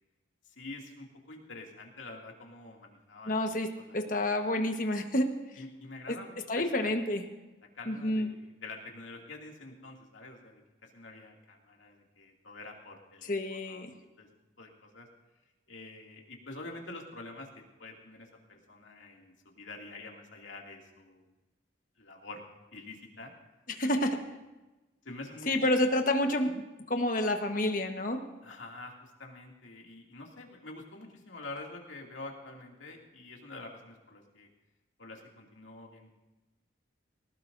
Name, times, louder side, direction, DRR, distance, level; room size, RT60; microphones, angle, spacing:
voice 1, 0.6-3.4 3.8-4.0 5.6-6.9 7.7-13.9 14.2-14.3 14.6-15.1 15.7-21.3 22.0-22.4 22.7-23.3 23.9-24.1 25.0-25.6 28.4-34.5 35.0-36.1, left 2 dB, 85° left, 0 dB, 2.5 m, -47 dB
voice 2, 3.3-5.3 6.1-6.2 6.5-7.2 7.9-8.3 13.3-13.9 23.7-24.2 25.5-26.6 26.9-28.2, left 1 dB, 45° left, 5 dB, 1.3 m, -29 dB
19.0 x 18.5 x 2.7 m, 1.1 s
head